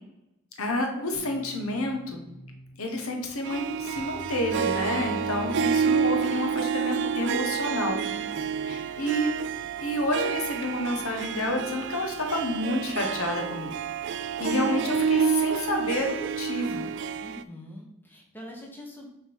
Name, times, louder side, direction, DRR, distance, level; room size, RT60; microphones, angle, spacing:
voice 1, 0.6-2.2 2.8-8.0 8.7-9.3 9.8-13.7 14.4-16.9, left 1 dB, 80° left, 3 dB, 1.2 m, -29 dB
sound 1, 1.1-6.7, left 1 dB, 45° left, 1.7 m, -46 dB
Harp, 3.4-17.4, right 6 dB, 55° right, 0.3 m, -29 dB
voice 2, 8.1-8.8 17.2-19.1, equal, 10° left, -1 dB, 1.1 m, -44 dB
6.6 x 3.7 x 4.5 m, 0.86 s
head